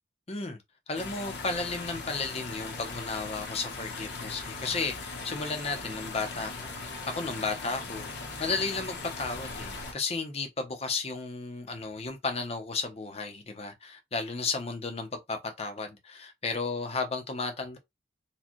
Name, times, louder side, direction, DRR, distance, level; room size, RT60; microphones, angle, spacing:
voice 1, 0.3-0.6 0.9-8.1 8.4-17.8, left 4 dB, 30° left, 0.7 m, -34 dB
sound 1, 1.0-9.9, left 3 dB, 60° left, 1.0 m, -39 dB
4.2 x 2.3 x 3.0 m
head